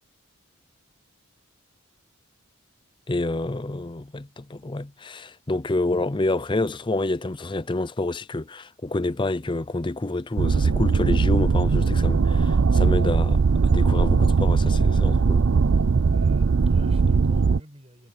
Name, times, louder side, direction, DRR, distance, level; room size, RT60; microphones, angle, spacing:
voice 1, 3.1-15.4, left 2 dB, 20° left, 0.5 m, -28 dB
sound 1, 10.4-17.6, right 4 dB, 60° right, 0.5 m, -20 dB
voice 2, 16.1-18.1, equal, 25° right, 7.6 m, -46 dB
head